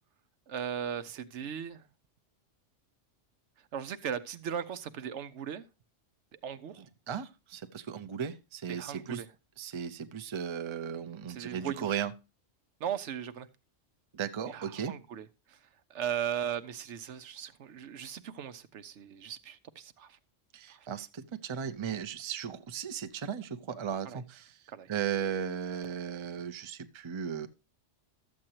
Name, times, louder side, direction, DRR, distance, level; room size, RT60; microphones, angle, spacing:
voice 1, 0.5-1.8 3.7-5.6 6.4-6.8 8.7-9.3 11.3-12.0 12.8-13.5 14.4-15.6 15.9-20.2 20.7-20.9 24.0-24.2 24.7-24.9, right 8 dB, 75° right, 12 dB, 1.0 m, -38 dB
voice 2, 7.1-9.2 9.6-12.1 14.1-14.9 20.5-24.6 24.9-27.5, right 8 dB, 35° right, 11 dB, 0.5 m, -36 dB
12.5 x 7.6 x 2.9 m, 0.27 s
omnidirectional pair, 1.2 m